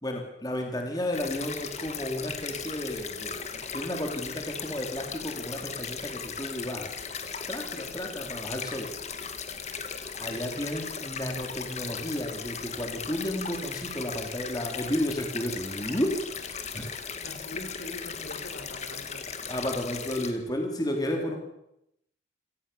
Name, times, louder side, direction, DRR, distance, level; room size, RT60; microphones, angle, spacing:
voice 1, 0.0-6.9 7.5-8.9 10.2-17.0 19.5-21.4, left 1 dB, 20° left, 2 dB, 3.4 m, -32 dB
sound 1, 1.1-20.3, left 6 dB, 35° left, 2.1 m, -37 dB
voice 2, 10.2-10.7 17.2-19.3 21.2-21.4, left 1 dB, 70° left, 6 dB, 4.9 m, -43 dB
27.0 x 18.0 x 7.1 m, 0.82 s
head